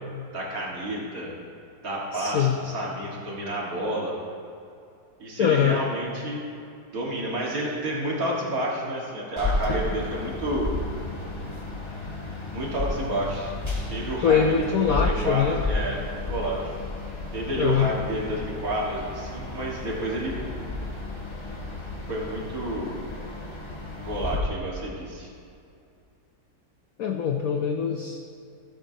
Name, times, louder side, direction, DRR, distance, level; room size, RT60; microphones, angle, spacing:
voice 1, 0.3-1.3 1.8-4.1 5.2-6.5 6.9-10.7 12.5-13.5 13.9-16.7 17.3-20.4 22.1-23.0 24.0-25.3, right 1 dB, 50° right, -3 dB, 1.9 m, -30 dB
voice 2, 2.1-2.6 5.4-5.8 14.2-15.6 17.6-17.9 27.0-28.2, left 7 dB, 90° left, 4 dB, 0.7 m, -23 dB
sound 1, 9.4-24.4, left 2 dB, 30° left, 0.5 m, -32 dB
14.5 x 7.7 x 2.7 m, 2.5 s
omnidirectional pair, 2.1 m